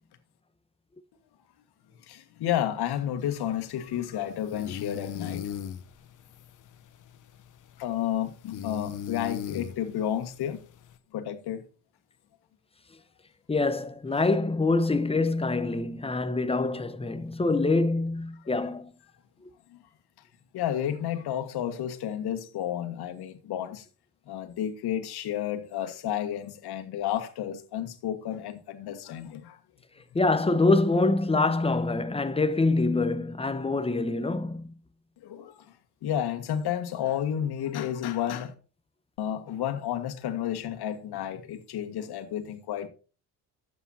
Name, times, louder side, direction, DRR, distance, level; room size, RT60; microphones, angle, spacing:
voice 1, 2.1-5.5 7.8-10.6 11.1-11.6 18.4-18.5 19.7-19.8 20.5-23.8 24.3-29.6 35.2-35.7 36.0-38.5 39.2-42.9, left 10 dB, 65° left, 1.8 m, -31 dB
sound 1, 3.2-11.0, left 8 dB, 45° left, 0.9 m, -40 dB
voice 2, 13.5-18.9 30.1-34.7, left 3 dB, 15° left, 1.0 m, -25 dB
12.0 x 8.1 x 2.8 m
cardioid pair, 100°, 41 cm